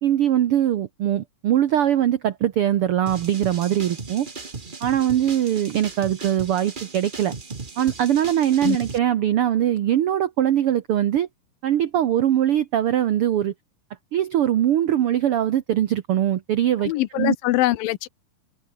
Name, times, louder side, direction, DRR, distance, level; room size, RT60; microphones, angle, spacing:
voice 1, 0.0-4.3 4.8-7.3 7.8-11.3 11.6-13.5 14.1-17.3, right 11 dB, 80° right, 1.2 m, -21 dB
sound 1, 3.1-9.0, right 4 dB, 45° right, 0.6 m, -37 dB
voice 2, 16.8-18.1, left 17 dB, 85° left, 2.6 m, -23 dB
omnidirectional pair, 4.0 m